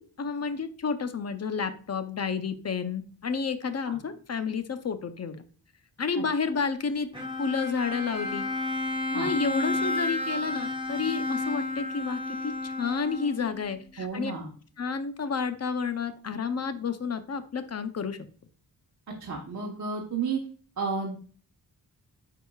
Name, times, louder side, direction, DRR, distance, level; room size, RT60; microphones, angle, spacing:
voice 1, 0.0-5.4 6.0-7.1 7.4-8.5 9.1-14.3 14.8-18.2, left 5 dB, 45° left, 10 dB, 0.7 m, -30 dB
Bowed string instrument, 7.1-13.6, left 2 dB, 15° right, 2.0 m, -31 dB
voice 2, 14.0-14.5 19.2-20.4 20.8-21.2, right 5 dB, 50° right, -1 dB, 1.1 m, -32 dB
9.0 x 5.0 x 2.3 m, 0.43 s
wide cardioid pair, 110°, 37 cm